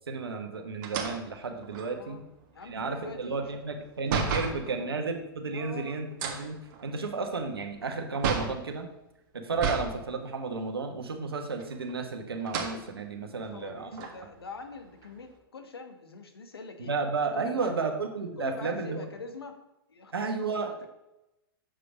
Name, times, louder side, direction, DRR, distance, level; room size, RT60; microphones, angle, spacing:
voice 1, 0.1-2.2 2.6-8.9 9.3-14.0 16.8-19.0 20.1-20.9, right 4 dB, 80° right, 5 dB, 1.3 m, -33 dB
sound 1, 0.8-4.6 6.1-8.6 9.5-10.0 10.3-10.4 11.5-12.0 12.4-12.8 13.4-13.5 13.9-15.3, right 6 dB, 50° right, 1.5 m, -33 dB
voice 2, 1.9-2.3 2.5-5.0 5.5-6.0 13.3-16.9 17.3-17.9 18.4-19.5 19.9-20.9, left 4 dB, 80° left, 7 dB, 1.2 m, -44 dB
7.5 x 5.0 x 5.1 m, 0.91 s
hypercardioid pair, 105°, 13 cm